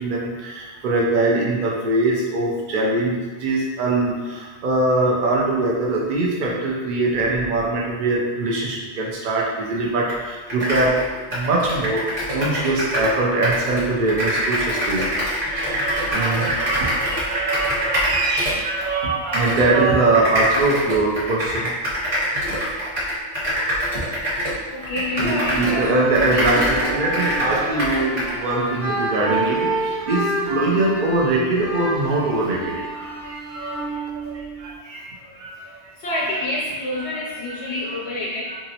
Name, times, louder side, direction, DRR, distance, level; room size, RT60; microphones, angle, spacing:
voice 1, 0.0-15.1 15.3-21.8 22.1-22.5 23.2-23.6 23.9-24.3 25.2-35.1 35.3-35.7 37.0-37.2 37.5-37.6 37.9-38.0, right 2 dB, 55° right, -2 dB, 0.7 m, -23 dB
sound 1, 10.1-10.2 10.5-13.2 13.4-18.9 19.3-19.6 20.1-25.8 26.1-28.3, equal, 35° right, 1.2 m, -24 dB
voice 2, 24.7-26.5 35.7-38.6, left 1 dB, 75° left, -4 dB, 0.8 m, -28 dB
sound 2, 25.1-34.8, right 2 dB, 90° right, 1.3 m, -29 dB
2.9 x 2.7 x 2.8 m, 1.4 s
omnidirectional pair, 1.2 m